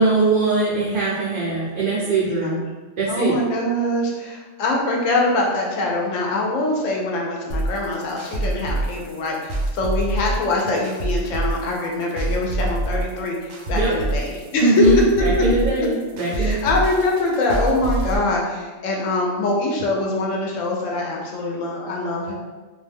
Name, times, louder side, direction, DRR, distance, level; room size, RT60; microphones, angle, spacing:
voice 1, 0.0-2.6 3.0-3.3 13.7-13.9 14.6-16.6, right 2 dB, 60° right, -6 dB, 0.5 m, -21 dB
voice 2, 2.2-2.6 3.1-14.8 15.4-15.5 16.3-22.3, left 2 dB, 80° left, -1 dB, 1.0 m, -24 dB
sound 1, 7.5-18.2, right 1 dB, 80° right, 1.0 m, -25 dB
2.5 x 2.1 x 3.3 m, 1.3 s
omnidirectional pair, 1.3 m